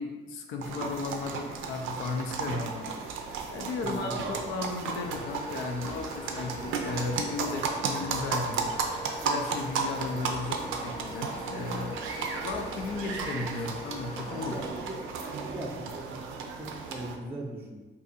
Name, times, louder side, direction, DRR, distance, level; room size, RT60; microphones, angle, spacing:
voice 1, 0.0-3.0 3.5-8.7 9.2-12.0 12.4-14.6, left 3 dB, 85° left, 3 dB, 0.5 m, -35 dB
sound 1, 0.6-17.2, right 5 dB, 85° right, 0.4 m, -34 dB
voice 2, 3.8-4.4 14.2-17.8, right 1 dB, 10° right, -2 dB, 0.4 m, -40 dB
sound 2, 4.9-14.7, left 1 dB, 30° left, 0.7 m, -43 dB
2.6 x 2.6 x 4.0 m, 1.3 s
cardioid pair, 90°, 20 cm